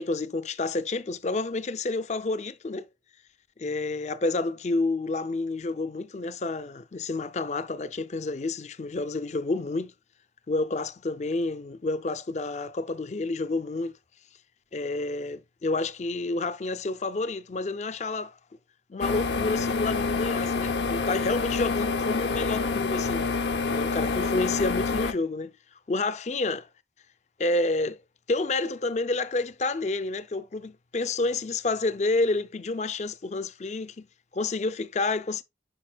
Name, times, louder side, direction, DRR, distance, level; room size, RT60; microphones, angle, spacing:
voice 1, 0.0-2.9 3.6-9.9 10.5-13.9 14.7-18.3 18.9-23.3 23.7-25.6 25.9-26.7 27.4-28.0 28.3-34.1 34.3-35.4, left 3 dB, 40° left, 0.4 m, -29 dB
sound 1, 19.0-25.1, left 4 dB, 75° left, 0.7 m, -27 dB
8.7 x 5.6 x 2.3 m
head